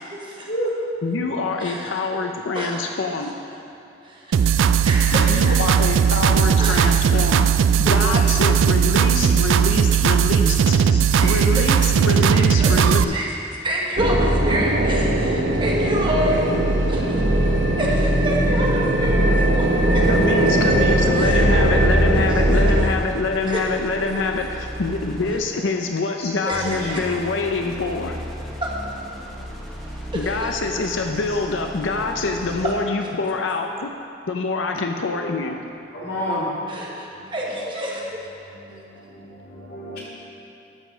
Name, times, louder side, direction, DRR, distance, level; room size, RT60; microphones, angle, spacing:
voice 1, 0.1-0.5 1.6-1.9 2.5-2.8 4.0-5.6 6.6-6.8 7.8-8.0 11.1-11.8 12.3-12.7 13.1-13.3 13.6-16.4 16.9-17.2 17.8-20.1 20.4-21.5 22.3-22.4 23.4-23.6 26.4-27.0 28.6-28.8 29.9-30.6 32.6-32.7 36.7-38.2, equal, 25° right, -3 dB, 1.3 m, -28 dB
voice 2, 1.0-3.3 5.1-10.8 11.2-13.1 20.1-28.2 30.1-33.9 34.3-35.6, left 3 dB, 85° left, 3 dB, 0.6 m, -25 dB
sound 1, 4.3-13.0, right 7 dB, 85° right, 0.3 m, -17 dB
voice 3, 5.1-5.4 6.8-6.9 9.4-9.5 10.9-11.0 12.7-12.9 26.2-26.9 30.7-30.8 31.3-31.4 35.9-36.5 37.2-37.3 38.5-40.0, equal, 55° left, -6 dB, 2.7 m, -31 dB
sound 2, 14.0-22.9, right 1 dB, 65° right, 1.0 m, -19 dB
sound 3, 20.0-25.6 26.5-32.9, equal, ahead, 1.1 m, -35 dB
12.5 x 5.5 x 6.2 m, 2.7 s
head